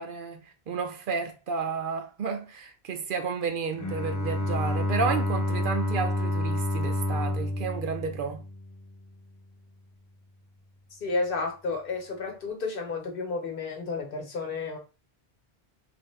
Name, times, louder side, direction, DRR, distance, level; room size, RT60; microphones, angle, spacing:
voice 1, 0.0-8.4, right 5 dB, 60° right, 0.7 m, -32 dB
Bowed string instrument, 3.8-9.0, left 1 dB, 25° left, 0.4 m, -29 dB
voice 2, 11.0-14.8, left 3 dB, 55° left, 1.1 m, -31 dB
3.5 x 2.3 x 3.2 m
omnidirectional pair, 1.1 m